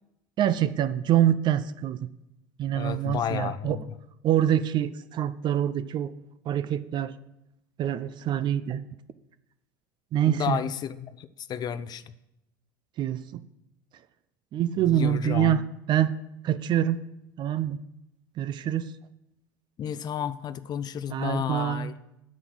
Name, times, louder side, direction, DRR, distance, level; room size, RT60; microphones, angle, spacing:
voice 1, 0.4-2.1 2.6-3.8 4.2-6.1 6.5-7.1 7.8-8.8 10.1-10.6 13.0-13.4 14.5-15.6 15.9-16.1 16.4-17.0 17.4-17.8 18.4-18.9 21.1-21.9, right 11 dB, 45° right, 15 dB, 0.6 m, -25 dB
voice 2, 2.7-3.8 10.3-12.1 14.9-15.6 19.8-21.9, left 9 dB, 40° left, 15 dB, 0.7 m, -32 dB
8.9 x 6.3 x 7.8 m, 0.86 s
hypercardioid pair, 85°, 11 cm